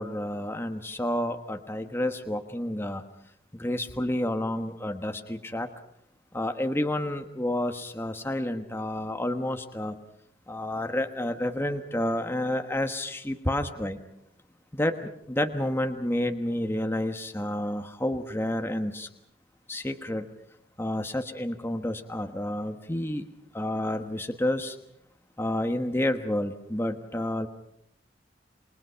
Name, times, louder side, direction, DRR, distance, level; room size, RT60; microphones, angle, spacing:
voice 1, 0.0-3.0 3.5-5.7 6.3-10.0 10.5-14.0 14.7-19.1 19.7-20.3 20.8-23.2 23.5-24.8 25.4-27.5, left 1 dB, 15° left, 6 dB, 1.2 m, -30 dB
28.0 x 22.5 x 5.7 m, 0.73 s
head